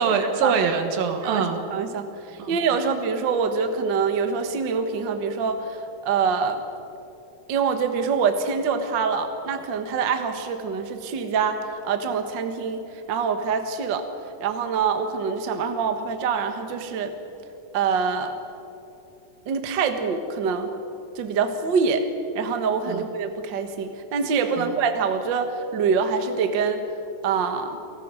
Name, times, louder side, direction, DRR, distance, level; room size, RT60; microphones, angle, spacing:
voice 1, 0.0-1.6 2.4-2.5 22.9-23.0 24.6-24.7, right 6 dB, 80° right, 5 dB, 3.3 m, -23 dB
voice 2, 1.2-2.1 2.5-6.6 7.5-14.1 14.4-17.1 17.7-18.4 19.5-20.7 21.2-22.1 22.3-26.8 27.2-27.8, right 5 dB, 55° right, 7 dB, 1.2 m, -25 dB
28.5 x 18.5 x 4.9 m, 2.8 s
omnidirectional pair, 4.1 m